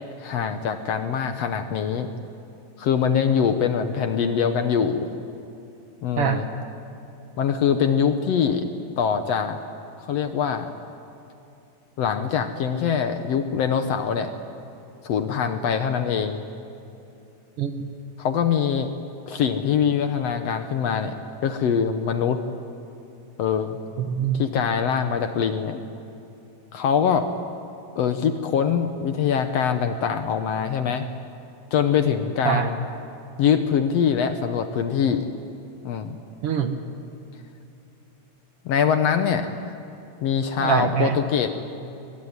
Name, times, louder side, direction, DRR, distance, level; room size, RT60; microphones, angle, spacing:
voice 1, 0.2-2.1 2.8-5.1 6.0-6.4 7.4-8.6 9.0-9.6 10.0-10.7 12.0-14.3 15.0-16.4 18.2-18.9 19.3-21.2 21.4-22.4 23.4-23.8 24.3-25.8 26.7-27.3 28.0-31.1 31.7-32.8 33.4-35.3 35.9-36.2 38.7-39.5 40.2-41.5, left 7 dB, 65° left, 8 dB, 1.8 m, -23 dB
voice 2, 17.6-17.9 24.0-24.4 32.4-32.7 36.4-36.8 40.6-41.2, right 7 dB, 60° right, 7 dB, 1.7 m, -23 dB
23.0 x 21.5 x 9.6 m, 2.8 s
omnidirectional pair, 3.8 m